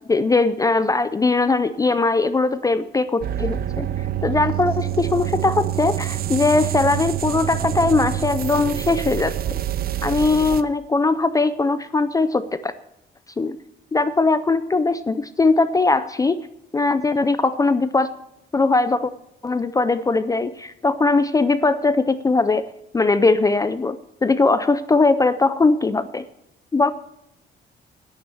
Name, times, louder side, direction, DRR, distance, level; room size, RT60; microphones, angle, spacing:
voice 1, 0.1-3.9 4.2-9.6 10.0-12.7 13.4-13.6 13.9-16.5 16.7-18.1 18.5-19.1 19.4-22.6 22.9-24.0 24.2-26.2 26.7-26.9, left 3 dB, 15° left, 13 dB, 0.4 m, -20 dB
sound 1, 3.2-10.6, right 12 dB, 50° right, 0.6 m, -26 dB
10.5 x 9.6 x 7.0 m, 0.83 s
cardioid pair, 180°, 20 cm